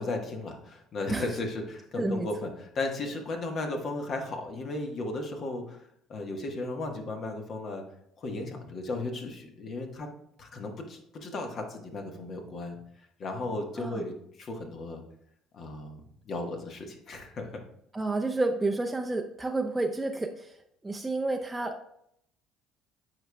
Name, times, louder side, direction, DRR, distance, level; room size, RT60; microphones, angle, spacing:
voice 1, 0.0-7.8 8.2-10.1 10.4-12.8 13.2-15.0 15.5-17.6, left 2 dB, 50° left, 3 dB, 1.3 m, -35 dB
voice 2, 2.0-2.3 13.8-14.1 17.9-20.6 20.8-21.9, right 2 dB, 15° right, 3 dB, 0.5 m, -30 dB
8.8 x 4.9 x 2.3 m, 0.73 s
supercardioid pair, 75°, 0 cm